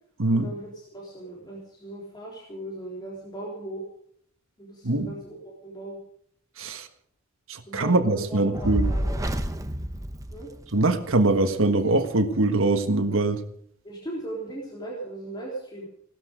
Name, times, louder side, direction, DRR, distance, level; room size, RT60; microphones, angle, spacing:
voice 1, 0.3-3.8 4.6-6.0 7.7-9.2 10.3-10.5 13.8-15.9, right 1 dB, 20° left, -4 dB, 3.6 m, -38 dB
voice 2, 7.5-8.9 10.7-13.4, right 2 dB, 65° right, 7 dB, 1.5 m, -23 dB
Fire, 8.5-11.0, equal, 15° right, 0.9 m, -28 dB
17.5 x 12.5 x 5.2 m, 0.64 s
head